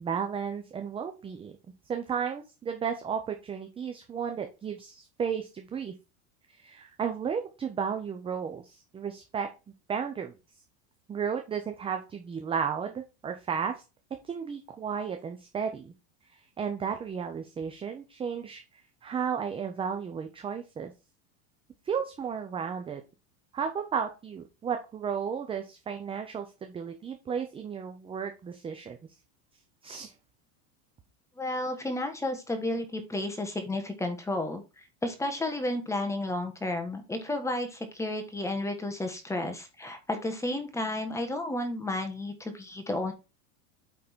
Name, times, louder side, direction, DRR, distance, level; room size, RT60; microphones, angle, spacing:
voice 1, 0.0-1.5 1.9-5.9 6.6-9.5 9.9-10.3 11.1-13.8 14.2-15.9 16.6-18.6 19.0-20.9 21.9-23.0 23.5-29.0 29.8-30.1, right 7 dB, 15° right, 5 dB, 0.6 m, -33 dB
voice 2, 31.4-43.1, left 1 dB, 5° left, 6 dB, 1.3 m, -32 dB
8.7 x 3.8 x 4.4 m, 0.28 s
supercardioid pair, 150°, 44 cm